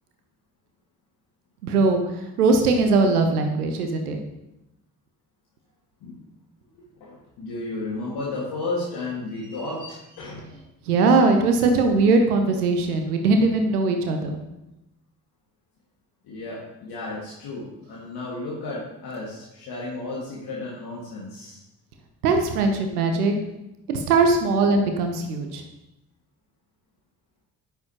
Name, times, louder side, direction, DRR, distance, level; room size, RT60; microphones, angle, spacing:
voice 1, 1.6-4.2 10.9-14.4 22.2-23.3 23.9-25.6, right 3 dB, 80° right, 5 dB, 0.9 m, -20 dB
voice 2, 6.7-10.5 16.2-21.6, left 2 dB, 55° left, -5 dB, 2.0 m, -33 dB
9.4 x 6.8 x 2.9 m, 0.90 s
figure-of-eight pair, 40°, 45 cm